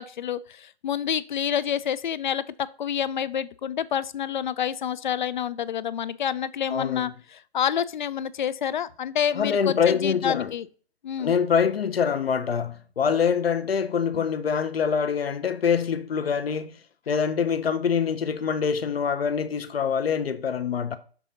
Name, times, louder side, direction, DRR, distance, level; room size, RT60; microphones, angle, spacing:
voice 1, 0.0-7.1 7.5-10.7 11.0-11.3 14.2-14.3, left 9 dB, 45° left, 0.4 m, -28 dB
voice 2, 6.7-7.1 9.3-10.5 11.2-16.8 17.1-21.0, left 6 dB, 65° left, 0.9 m, -25 dB
6.1 x 3.9 x 5.4 m
figure-of-eight pair, 135°, 33 cm